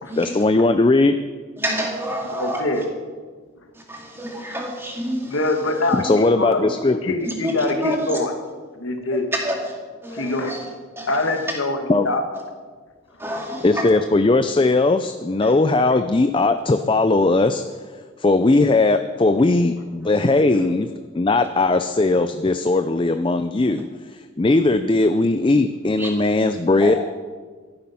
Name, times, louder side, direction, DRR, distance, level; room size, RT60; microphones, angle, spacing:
voice 1, 0.2-1.2 5.9-7.0 11.9-12.1 13.6-17.6 18.2-20.9 21.1-23.8 24.4-26.9, left 2 dB, 25° left, 9 dB, 0.4 m, -18 dB
voice 2, 1.6-2.6 3.9-5.3 6.0-6.2 7.2-7.5 7.8-8.2 9.4-9.5 10.0-10.6 11.0-11.1 13.2-13.9 26.0-26.1 26.8-26.9, equal, 10° right, 0 dB, 2.2 m, -27 dB
voice 3, 2.3-2.8 5.2-8.3 8.7-9.3 10.1-10.5 11.1-12.2 13.2-13.3, left 2 dB, 80° left, 5 dB, 1.7 m, -24 dB
13.5 x 12.0 x 5.6 m, 1.5 s
head